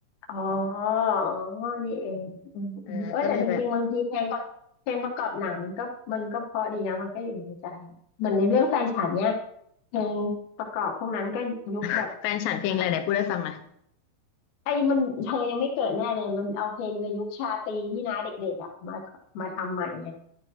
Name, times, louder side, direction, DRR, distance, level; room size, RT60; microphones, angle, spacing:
voice 1, 0.3-4.4 4.9-7.9 8.2-9.4 9.9-12.1 12.7-13.0 14.7-19.0 19.3-20.1, left 5 dB, 65° left, 1 dB, 2.2 m, -28 dB
voice 2, 2.9-3.6 11.8-13.6, left 10 dB, 90° left, 8 dB, 2.9 m, -28 dB
11.0 x 11.0 x 2.9 m, 0.71 s
omnidirectional pair, 4.8 m